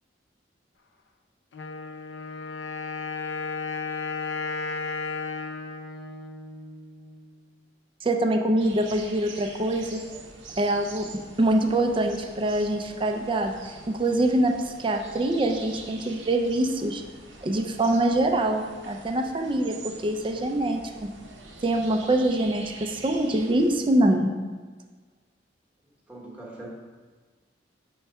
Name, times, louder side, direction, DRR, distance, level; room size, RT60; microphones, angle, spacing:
Wind instrument woodwind instrument, 1.5-7.3, left 4 dB, 75° left, 0.5 m, -34 dB
voice 1, 8.0-10.0 10.6-11.1 11.4-13.5 13.9-17.0 17.4-20.8 21.6-24.3, right 1 dB, 25° right, 4 dB, 0.4 m, -24 dB
sound 1, 8.6-23.8, right 3 dB, 80° right, 0.8 m, -45 dB
voice 2, 26.1-26.7, right 2 dB, 10° right, -5 dB, 1.0 m, -41 dB
5.2 x 3.5 x 5.5 m, 1.4 s
head